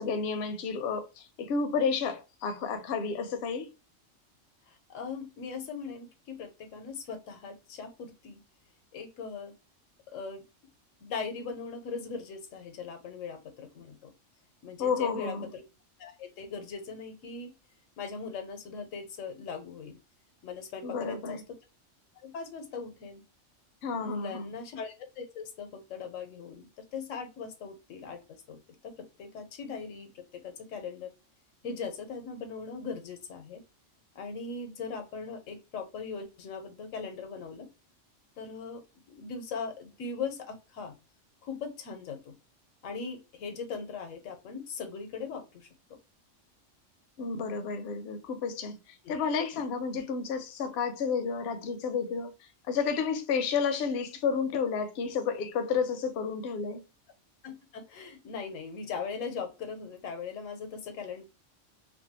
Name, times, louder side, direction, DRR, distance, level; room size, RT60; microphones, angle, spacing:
voice 1, 0.0-3.7 14.8-15.5 20.8-21.4 23.8-24.5 47.2-56.8, left 5 dB, 65° left, 0.7 m, -31 dB
voice 2, 4.7-8.4 8.9-9.5 10.1-10.4 11.0-14.1 14.6-15.6 16.0-17.5 18.0-20.0 20.4-21.4 22.2-23.2 24.0-28.2 28.5-31.1 31.6-33.6 34.1-37.7 38.4-38.8 39.1-40.9 41.4-42.3 42.8-45.7 49.0-49.2 57.4-61.2, left 5 dB, 85° left, 1.0 m, -40 dB
2.6 x 2.2 x 2.7 m
omnidirectional pair, 1.3 m